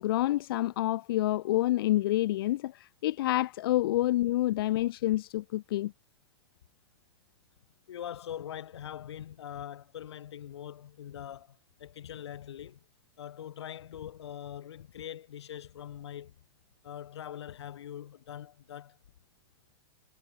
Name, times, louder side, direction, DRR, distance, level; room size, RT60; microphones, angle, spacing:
voice 1, 0.0-5.9, left 15 dB, 60° left, 2.9 m, -28 dB
voice 2, 7.9-12.8 13.2-16.4 16.8-19.0, left 10 dB, 80° left, 6.3 m, -43 dB
supercardioid pair, 155°, 14 cm